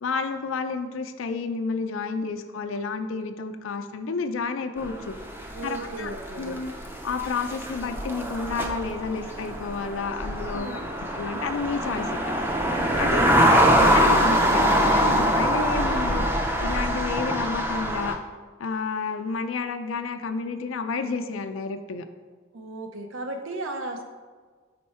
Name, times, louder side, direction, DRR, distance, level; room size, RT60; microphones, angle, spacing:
voice 1, 0.0-5.2 5.6-6.1 6.4-6.7 7.0-10.7 11.2-12.3 12.9-13.4 13.9-16.3 16.6-18.2 18.6-22.1, left 4 dB, 85° left, 8 dB, 0.5 m, -30 dB
sound 1, 4.8-18.2, equal, 10° right, 0.4 m, -24 dB
voice 2, 5.5-6.6 10.5-10.9 22.5-24.0, right 2 dB, 85° right, 5 dB, 0.7 m, -36 dB
5.5 x 4.3 x 4.3 m, 1.5 s
head